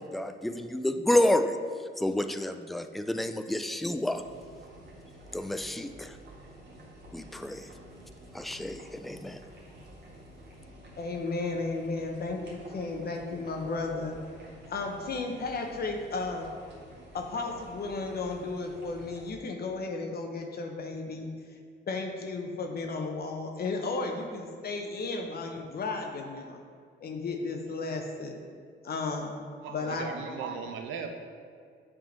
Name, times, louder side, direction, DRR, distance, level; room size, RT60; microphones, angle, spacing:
voice 1, 0.0-1.6 2.0-4.2 5.3-6.2 7.1-7.7 8.3-9.4, left 1 dB, ahead, 8 dB, 0.3 m, -29 dB
sound 1, 4.1-19.3, right 1 dB, 60° right, 1.7 m, -50 dB
voice 2, 10.9-14.1 14.7-16.5 17.1-21.6 21.9-26.6 27.0-28.4 28.8-29.4 29.7-30.1, left 3 dB, 50° left, 2 dB, 0.8 m, -34 dB
voice 3, 29.6-31.2, right 5 dB, 90° right, 5 dB, 0.8 m, -37 dB
7.6 x 3.7 x 5.2 m, 2.1 s
cardioid pair, 90°, 20 cm